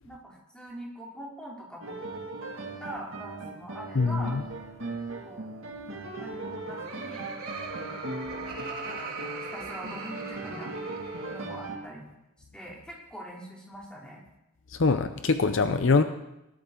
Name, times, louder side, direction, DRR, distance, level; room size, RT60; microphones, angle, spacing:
voice 1, 0.0-2.0 2.8-4.4 5.2-5.5 6.2-7.3 8.8-10.7 11.3-12.1 12.5-14.3, equal, 5° left, -3 dB, 3.0 m, -43 dB
sound 1, 1.8-11.8, right 2 dB, 65° right, 2.1 m, -38 dB
voice 2, 4.0-4.4 14.7-16.0, left 4 dB, 60° left, 9 dB, 0.6 m, -23 dB
Laughter, 6.4-11.6, right 3 dB, 80° right, 3.5 m, -40 dB
18.0 x 12.0 x 3.8 m, 0.91 s
head